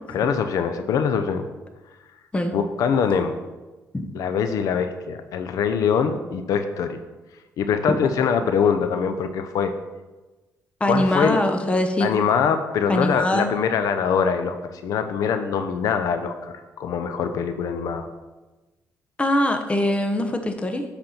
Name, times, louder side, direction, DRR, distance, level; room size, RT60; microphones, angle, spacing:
voice 1, 0.1-1.4 2.5-3.4 4.1-7.0 7.6-9.7 10.9-11.4 12.0-18.1, left 6 dB, 80° left, 8 dB, 0.6 m, -23 dB
voice 2, 10.8-12.1 12.9-13.5 19.2-20.8, left 1 dB, 20° left, 6 dB, 0.9 m, -22 dB
7.7 x 4.3 x 5.8 m, 1.2 s
cardioid pair, 105°, 6 cm